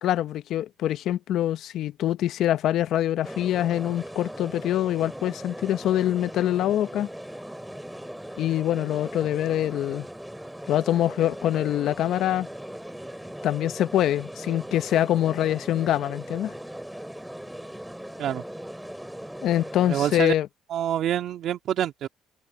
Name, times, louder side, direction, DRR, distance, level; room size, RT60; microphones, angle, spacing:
voice 1, 0.0-7.1 8.4-10.1 10.7-12.5 13.4-16.5 19.4-20.5, left 12 dB, 65° left, 1.0 m, -24 dB
sound 1, 3.2-20.2, equal, 5° right, 2.7 m, -39 dB
voice 2, 19.9-20.3 20.7-22.1, right 11 dB, 60° right, 2.2 m, -26 dB
open air
supercardioid pair, 80°, 0 cm